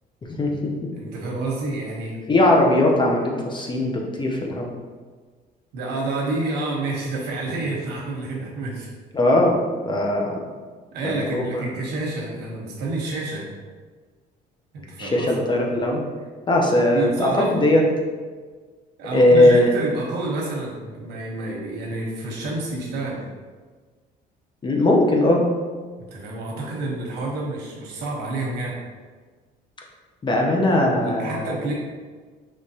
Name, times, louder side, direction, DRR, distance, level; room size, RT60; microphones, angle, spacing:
voice 1, 0.3-0.7 2.3-4.7 9.1-9.6 9.9-10.4 11.0-11.6 15.0-16.0 16.5-17.8 19.1-19.7 24.6-25.5 30.2-31.6, left 1 dB, 25° left, 0 dB, 0.8 m, -19 dB
voice 2, 0.9-2.2 5.7-8.9 10.9-13.5 14.7-15.3 16.9-17.7 19.0-23.2 26.0-28.8 31.0-31.7, right 2 dB, 80° right, -2 dB, 1.2 m, -29 dB
4.9 x 3.2 x 2.8 m, 1.5 s
cardioid pair, 110°, 17 cm